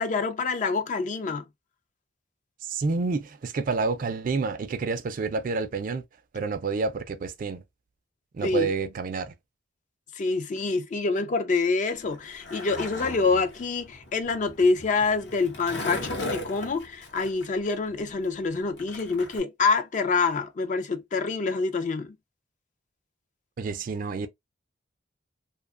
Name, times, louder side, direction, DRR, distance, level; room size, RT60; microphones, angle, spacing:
voice 1, 0.0-1.4 8.4-8.7 10.1-22.2, left 4 dB, 40° left, 0.4 m, -26 dB
voice 2, 2.6-6.0 6.3-7.6 8.3-9.3 23.6-24.3, right 4 dB, 45° right, 0.3 m, -29 dB
Skateboard, 11.9-19.4, left 2 dB, 65° left, 0.8 m, -38 dB
2.7 x 2.2 x 2.3 m
head